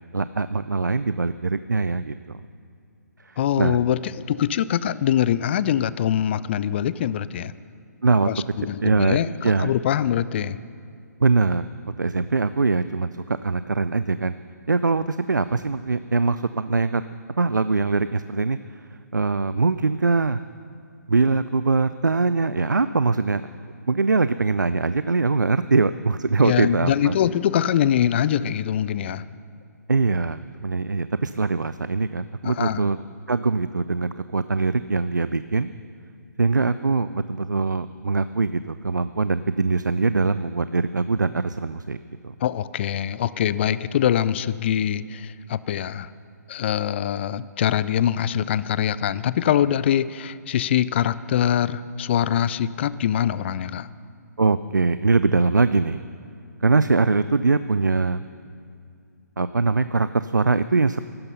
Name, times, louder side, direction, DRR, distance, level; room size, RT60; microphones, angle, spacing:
voice 1, 0.1-2.4 3.6-3.8 8.0-8.3 8.8-9.7 11.2-11.7 12.0-14.3 14.7-17.0 17.4-18.6 19.1-20.4 21.1-23.4 23.9-27.2 29.9-33.0 33.3-35.7 36.4-42.0 42.2-42.3 54.4-56.0 56.6-58.2 59.4-61.0, right 4 dB, 90° right, 13 dB, 0.4 m, -22 dB
voice 2, 3.4-7.5 8.2-10.6 26.4-29.2 32.4-32.9 42.4-46.1 46.5-53.9, left 10 dB, 40° left, 17 dB, 0.4 m, -23 dB
15.5 x 12.5 x 5.5 m, 2.4 s
figure-of-eight pair, 135°, 10 cm